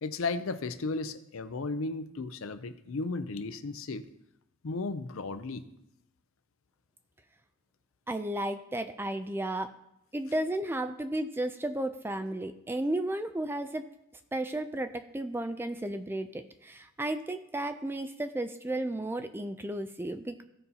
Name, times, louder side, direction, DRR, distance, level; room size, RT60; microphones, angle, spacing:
voice 1, 0.0-4.1 4.6-5.6, left 3 dB, 70° left, 10 dB, 0.6 m, -34 dB
voice 2, 8.1-9.7 10.1-13.9 14.3-20.4, right 1 dB, 10° right, 9 dB, 0.3 m, -33 dB
16.0 x 5.4 x 2.8 m, 0.83 s
head